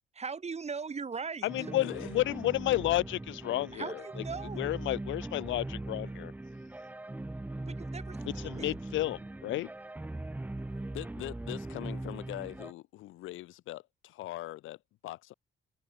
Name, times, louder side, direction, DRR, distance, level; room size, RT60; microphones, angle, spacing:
voice 1, 0.2-1.5 3.7-4.7 7.7-8.7, right 5 dB, 35° right, 2.0 m, -39 dB
voice 2, 1.4-4.2 4.5-6.3 8.3-9.7, left 15 dB, 75° left, 0.5 m, -31 dB
sound 1, 1.5-12.7, right 2 dB, 10° right, 0.6 m, -40 dB
voice 3, 10.9-15.3, left 16 dB, 90° left, 1.6 m, -42 dB
open air
cardioid pair, 90°, 20 cm